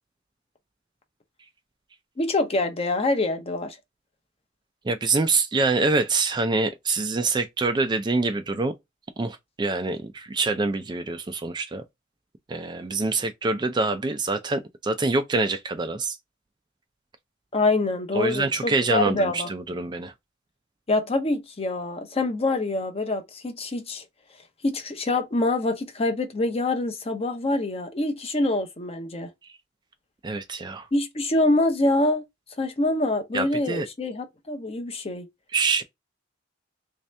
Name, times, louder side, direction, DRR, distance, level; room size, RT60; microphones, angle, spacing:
voice 1, 2.2-3.8 17.5-19.5 20.9-24.0 24.6-29.3 30.9-32.2 32.6-35.3, left 2 dB, 30° left, 0.7 m, -25 dB
voice 2, 4.8-8.7 9.2-11.8 12.5-16.2 18.1-20.1 30.2-30.9 33.3-33.9 35.5-35.8, right 3 dB, 20° right, 0.3 m, -25 dB
3.2 x 2.8 x 3.2 m
head